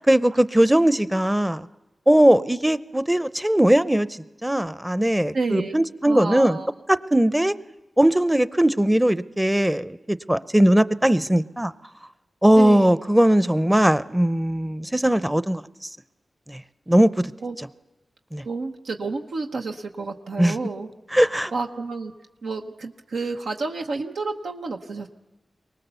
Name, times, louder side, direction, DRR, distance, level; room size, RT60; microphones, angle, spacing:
voice 1, 0.1-1.6 2.1-4.1 4.4-6.6 6.9-7.5 8.0-11.7 12.4-15.6 16.5-16.6 16.9-17.3 18.3-18.4 20.4-20.6 21.1-21.5, right 1 dB, 10° right, 15 dB, 0.6 m, -19 dB
voice 2, 5.3-5.8 6.1-6.7 12.6-13.0 17.4-17.6 18.4-20.9 21.5-22.1 22.4-25.1, right 3 dB, 90° right, 3 dB, 0.9 m, -30 dB
23.5 x 18.5 x 6.9 m, 1.1 s
cardioid pair, 55°, 0 cm